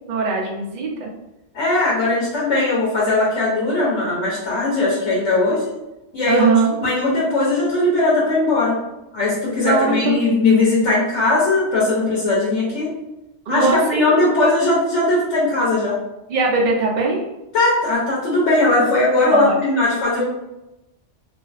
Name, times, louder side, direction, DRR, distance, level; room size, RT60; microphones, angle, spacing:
voice 1, 0.1-1.1 6.3-6.8 9.6-10.2 13.5-14.0 16.3-17.2 19.3-19.9, right 4 dB, 55° right, 0 dB, 0.5 m, -20 dB
voice 2, 1.5-5.7 6.1-6.5 6.8-8.8 9.1-12.9 13.5-15.9 17.5-20.2, left 2 dB, 80° left, -6 dB, 1.1 m, -19 dB
2.5 x 2.4 x 2.4 m, 0.95 s
omnidirectional pair, 1.2 m